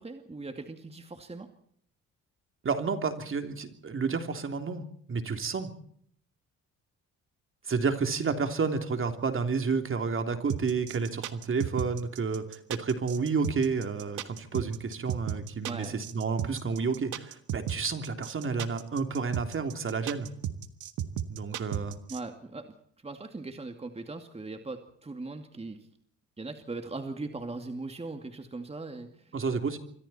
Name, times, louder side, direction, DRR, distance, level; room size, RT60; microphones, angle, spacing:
voice 1, 0.0-1.5 15.7-16.0 22.1-22.7 23.0-25.9 26.4-29.3, right 3 dB, 20° right, 6 dB, 2.4 m, -39 dB
voice 2, 2.6-5.7 7.6-20.3 21.3-22.0 29.3-29.8, right 5 dB, 45° right, 6 dB, 3.3 m, -30 dB
sound 1, 10.5-22.2, right 10 dB, 80° right, 1.8 m, -34 dB
27.5 x 24.5 x 4.4 m, 0.65 s
cardioid pair, 90°, 30 cm